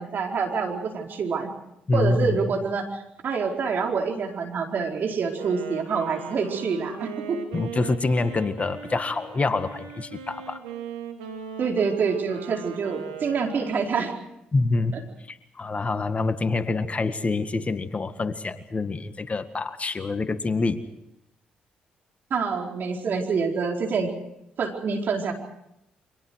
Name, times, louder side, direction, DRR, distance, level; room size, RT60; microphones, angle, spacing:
voice 1, 0.0-1.5 1.9-7.4 11.6-14.1 14.9-15.0 22.3-24.1 24.6-25.3, right 5 dB, 55° right, 1 dB, 4.5 m, -26 dB
voice 2, 1.9-2.4 7.5-10.6 14.5-14.9 15.3-20.8, left 3 dB, 35° left, 10 dB, 1.8 m, -26 dB
Wind instrument woodwind instrument, 5.2-14.2, right 7 dB, 90° right, 2.7 m, -39 dB
29.5 x 25.0 x 4.8 m, 0.83 s
hypercardioid pair, 45°, 4 cm